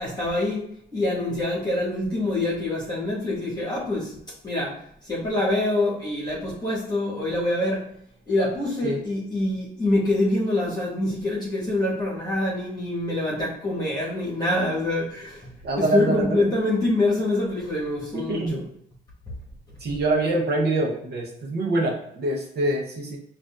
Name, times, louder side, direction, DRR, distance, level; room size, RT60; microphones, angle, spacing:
voice 1, 0.0-4.2 4.4-7.9 8.3-15.5 15.8-18.7, left 1 dB, 20° left, -7 dB, 1.3 m, -25 dB
voice 2, 15.6-16.5 18.1-18.6 19.8-23.2, right 2 dB, 55° right, -1 dB, 0.8 m, -25 dB
5.0 x 2.5 x 2.4 m, 0.70 s
cardioid pair, 90°, 20 cm